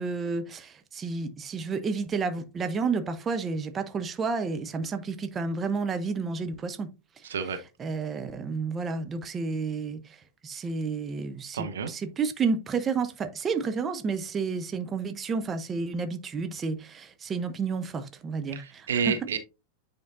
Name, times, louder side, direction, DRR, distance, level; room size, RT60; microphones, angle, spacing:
voice 1, 0.0-6.9 7.8-10.2 10.4-19.2, right 4 dB, 20° right, 0.8 m, -31 dB
voice 2, 7.2-7.6 11.5-11.9 18.6-19.4, right 6 dB, 65° right, 0.7 m, -29 dB
9.3 x 4.4 x 2.6 m
figure-of-eight pair, 90°, 0 cm